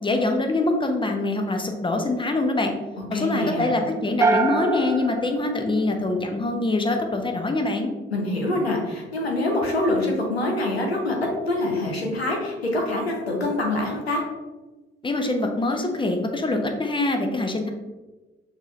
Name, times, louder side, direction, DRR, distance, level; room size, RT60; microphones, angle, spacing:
voice 1, 0.0-2.7 3.1-7.9 15.0-17.7, left 2 dB, 15° left, 4 dB, 0.8 m, -24 dB
voice 2, 3.1-3.7 8.1-14.2, left 2 dB, 90° left, 0 dB, 0.7 m, -25 dB
sound 1, 4.2-6.5, right 3 dB, 10° right, 0.5 m, -25 dB
6.4 x 2.5 x 3.2 m, 1.2 s
figure-of-eight pair, 45°, 30 cm